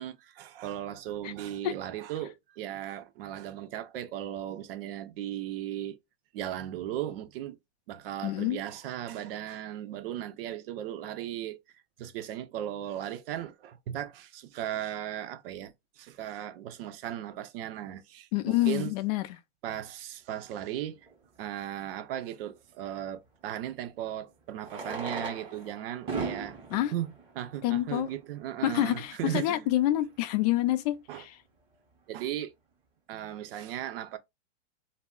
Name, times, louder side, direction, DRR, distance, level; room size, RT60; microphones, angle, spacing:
voice 1, 0.0-6.0 6.3-7.6 7.9-11.6 12.0-18.9 19.6-21.0 21.4-26.6 26.9-29.6 31.1-31.2 32.1-32.5 33.1-34.2, right 11 dB, 55° right, 0.6 m, -37 dB
voice 2, 8.2-8.6 18.3-19.3 26.7-26.9 27.6-28.1 28.6-31.4, left 15 dB, 35° left, 0.4 m, -27 dB
Fireworks, 21.1-21.2 23.4-23.5 24.6-28.3 29.1-29.2 29.4-29.5 29.7-29.8 30.3-30.5, right 4 dB, 15° right, 0.8 m, -38 dB
2.2 x 2.0 x 3.6 m
hypercardioid pair, 140°, 35 cm